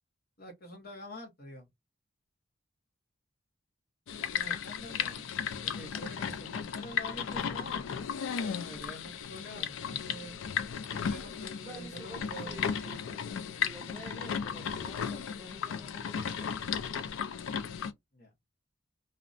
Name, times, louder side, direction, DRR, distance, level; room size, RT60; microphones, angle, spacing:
voice 1, 0.4-1.7 4.3-5.3 5.6-7.9 8.3-10.4 11.0-12.7 18.1-18.3, equal, 50° left, 0.8 m, -46 dB
sound 1, 4.1-17.9, left 7 dB, 80° left, 0.4 m, -35 dB
voice 2, 9.5-9.8 11.6-16.6, equal, 15° left, 1.4 m, -49 dB
2.5 x 2.1 x 2.4 m
head